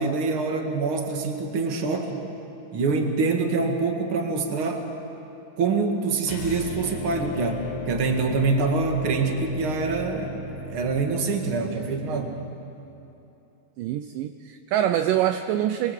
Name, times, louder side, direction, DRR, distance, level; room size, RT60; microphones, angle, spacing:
voice 1, 0.0-2.2 2.7-4.9 5.6-10.4 10.7-12.4, right 4 dB, 40° right, 3 dB, 2.2 m, -25 dB
sound 1, 6.2-12.4, left 2 dB, 85° left, 3.9 m, -37 dB
voice 2, 13.8-15.9, right 11 dB, 80° right, 8 dB, 2.0 m, -25 dB
26.0 x 22.0 x 8.2 m, 2.9 s
omnidirectional pair, 4.5 m